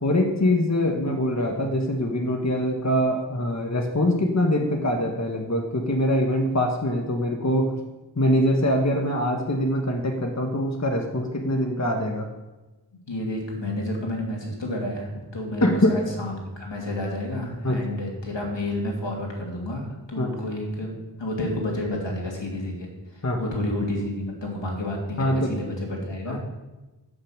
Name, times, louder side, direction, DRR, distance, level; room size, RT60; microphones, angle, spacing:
voice 1, 0.0-7.7 8.2-12.3 15.6-15.9 17.6-17.8 20.2-20.6 23.2-23.5 25.2-25.5 26.3-26.4, left 1 dB, 40° left, 2 dB, 1.6 m, -23 dB
voice 2, 13.1-26.4, left 1 dB, 80° left, -1 dB, 3.0 m, -30 dB
11.0 x 6.8 x 7.5 m, 1.1 s
wide cardioid pair, 45°, 43 cm